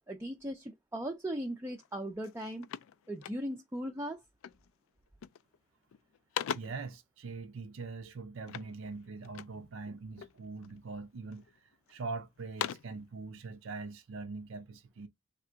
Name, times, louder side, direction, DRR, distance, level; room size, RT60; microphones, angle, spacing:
voice 1, 0.1-2.7 3.1-4.2, equal, 10° right, 0.4 m, -38 dB
sound 1, 1.8-1.9 2.2-3.8 4.4-4.7 5.1-5.6 5.9-6.9 8.5-9.7 10.2-10.8 11.3-12.0 12.4-13.0, left 9 dB, 75° left, 0.3 m, -41 dB
voice 2, 6.5-15.1, right 4 dB, 65° right, 0.5 m, -42 dB
3.6 x 2.5 x 4.4 m
head